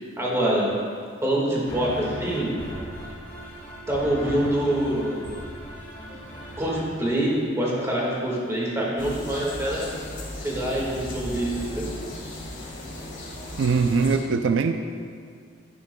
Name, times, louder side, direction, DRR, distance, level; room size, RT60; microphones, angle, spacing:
voice 1, 0.2-0.7 1.2-2.5 3.9-5.3 6.1-6.2 6.6-9.9 10.4-11.8, right 1 dB, 15° right, -4 dB, 1.8 m, -25 dB
sound 1, 1.7-6.8, equal, 10° left, 2.1 m, -37 dB
sound 2, 9.0-14.2, left 1 dB, 75° left, 1.9 m, -36 dB
voice 2, 13.6-14.7, right 5 dB, 85° right, 8 dB, 0.4 m, -21 dB
11.0 x 9.6 x 2.3 m, 2.1 s
head